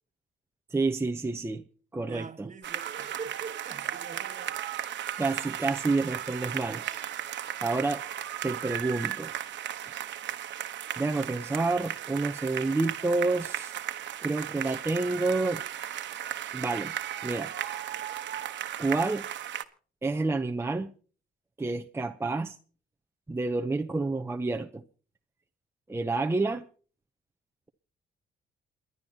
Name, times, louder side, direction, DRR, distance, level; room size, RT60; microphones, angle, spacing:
voice 1, 0.7-1.6 1.9-2.5 5.2-6.8 7.6-8.0 8.4-9.3 11.0-13.8 14.2-15.6 16.5-16.9 17.2-17.5 18.8-19.3 20.0-20.9 21.6-22.6 23.3-24.8 25.9-26.6, right 3 dB, 10° right, 0.7 m, -29 dB
voice 2, 2.0-4.6, right 5 dB, 40° right, 1.3 m, -43 dB
sound 1, 2.6-19.6, right 11 dB, 65° right, 1.1 m, -36 dB
28.5 x 11.0 x 2.8 m
cardioid pair, 90°, 20 cm